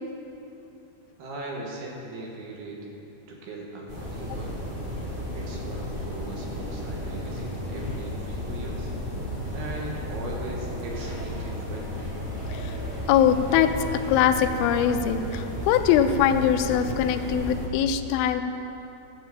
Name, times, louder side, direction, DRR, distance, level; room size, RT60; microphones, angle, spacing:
voice 1, 1.2-2.8 3.3-4.6 5.3-8.9 9.5-12.2, right 2 dB, 75° right, -1 dB, 3.3 m, -39 dB
sound 1, 3.9-17.7, left 1 dB, 20° right, 1.3 m, -33 dB
voice 2, 13.1-18.4, left 9 dB, 80° left, 7 dB, 2.3 m, -22 dB
10.5 x 7.3 x 8.0 m, 2.8 s
omnidirectional pair, 4.7 m